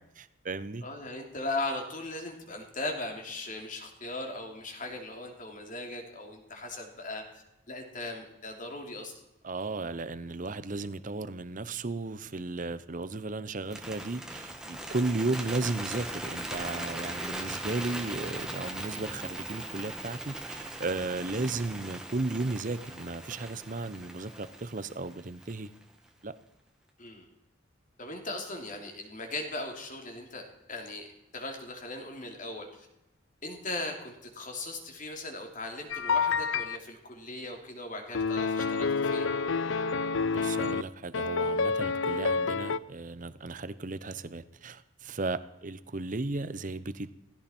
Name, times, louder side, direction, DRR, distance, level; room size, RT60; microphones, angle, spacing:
voice 1, 0.0-0.8 9.4-25.7 26.2-26.3 40.3-47.1, right 3 dB, 40° right, 14 dB, 0.8 m, -35 dB
voice 2, 0.8-9.1 27.0-27.3 28.0-31.1 31.3-32.9 33.4-39.3, left 2 dB, 40° left, 2 dB, 2.9 m, -38 dB
Bird, 13.6-25.8, right 1 dB, 5° right, 1.6 m, -39 dB
sound 1, 35.9-36.8 38.1-40.8 41.1-42.8, left 4 dB, 75° left, 0.5 m, -28 dB
17.0 x 16.0 x 4.4 m, 0.88 s
head